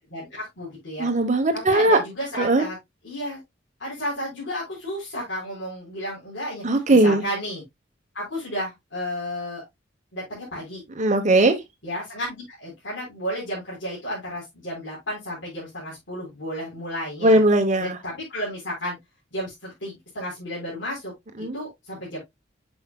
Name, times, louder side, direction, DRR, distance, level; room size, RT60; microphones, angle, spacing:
voice 1, 0.1-1.1 1.5-2.8 3.0-3.4 3.8-7.6 8.1-9.6 10.1-10.8 11.8-17.4 17.8-19.0 19.3-21.1 21.4-22.2, equal, 70° left, 4.0 m, -32 dB
voice 2, 1.0-2.0 2.4-2.6 6.6-7.2 11.0-11.6 17.2-18.0 21.4-21.6, right 2 dB, 40° right, 1.0 m, -18 dB
8.4 x 6.4 x 2.2 m
head